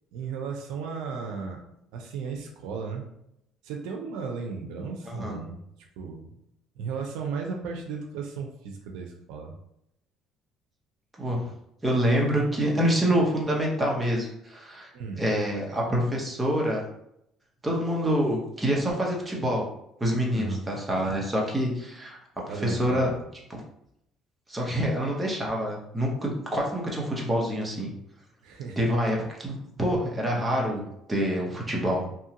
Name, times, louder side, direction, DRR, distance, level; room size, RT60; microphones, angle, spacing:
voice 1, 0.1-1.6 1.9-3.1 3.6-5.6 6.0-6.3 6.8-9.5 14.9-15.3 20.3-20.6 22.5-23.2 28.4-28.8, right 5 dB, 85° right, 2 dB, 0.5 m, -35 dB
voice 2, 5.1-5.4 11.2-11.5 11.8-14.9 15.2-16.8 17.6-19.7 20.0-22.2 22.5-23.1 23.5-23.6 24.5-27.9 28.8-30.8 31.1-32.1, equal, 15° right, -2 dB, 0.9 m, -26 dB
2.9 x 2.3 x 2.8 m, 0.78 s
cardioid pair, 105°, 0 cm